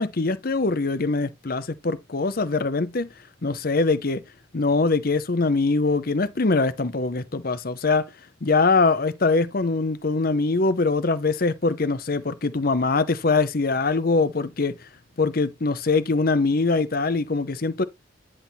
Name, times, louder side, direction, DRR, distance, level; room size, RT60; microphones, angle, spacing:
voice 1, 0.0-3.1 3.4-4.2 4.5-8.0 8.4-14.7 15.2-17.8, left 3 dB, 50° left, 0.8 m, -23 dB
10.5 x 3.6 x 4.3 m
head